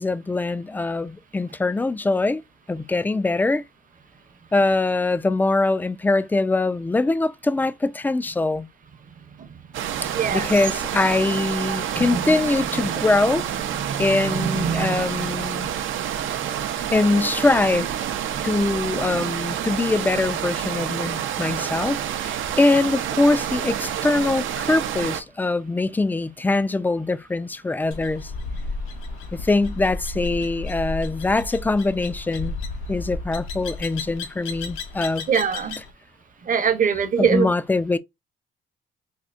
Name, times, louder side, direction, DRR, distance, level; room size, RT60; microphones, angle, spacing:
voice 1, 0.0-2.4 2.7-3.6 4.5-8.7 10.3-13.4 14.0-15.7 16.9-17.9 18.4-28.3 29.3-32.6 32.9-35.3 37.2-38.0, left 2 dB, 10° left, 0.3 m, -23 dB
sound 1, 9.7-25.2, right 10 dB, 75° right, 0.6 m, -28 dB
voice 2, 10.1-10.5 12.0-12.4 12.9-13.1 13.8-15.3 19.2-19.3 35.3-35.8 36.4-37.5, right 6 dB, 40° right, 0.8 m, -24 dB
sound 2, 27.9-35.9, left 3 dB, 85° left, 0.9 m, -33 dB
4.3 x 2.7 x 2.4 m
cardioid pair, 90°, 20 cm